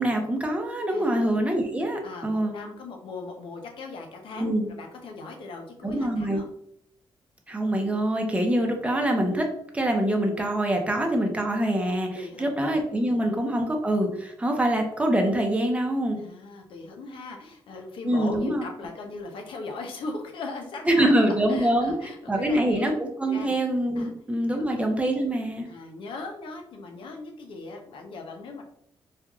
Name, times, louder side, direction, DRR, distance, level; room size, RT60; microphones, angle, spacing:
voice 1, 0.0-2.5 4.4-4.7 5.8-6.4 7.5-9.5 9.7-16.2 18.0-18.6 20.9-21.9 22.3-25.7, right 1 dB, 15° right, 2 dB, 0.7 m, -25 dB
voice 2, 0.9-1.2 2.0-6.5 12.1-12.6 13.0-13.3 16.1-22.8 23.3-23.6 24.0-24.1 24.5-24.6 25.7-28.6, left 3 dB, 75° left, 3 dB, 0.7 m, -39 dB
4.5 x 2.4 x 2.3 m, 0.71 s
cardioid pair, 105°, 9 cm